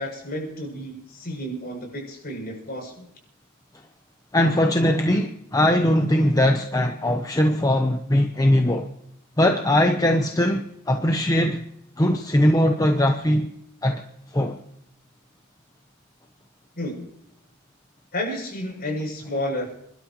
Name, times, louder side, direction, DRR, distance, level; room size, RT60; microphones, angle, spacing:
voice 1, 0.0-3.1 16.8-17.0 18.1-19.7, left 1 dB, 45° left, 7.6 m, -31 dB
voice 2, 4.3-8.9 9.4-11.6 12.0-13.5 13.8-14.0 14.3-14.6, left 1 dB, 15° left, 0.9 m, -20 dB
29.5 x 12.5 x 3.1 m
head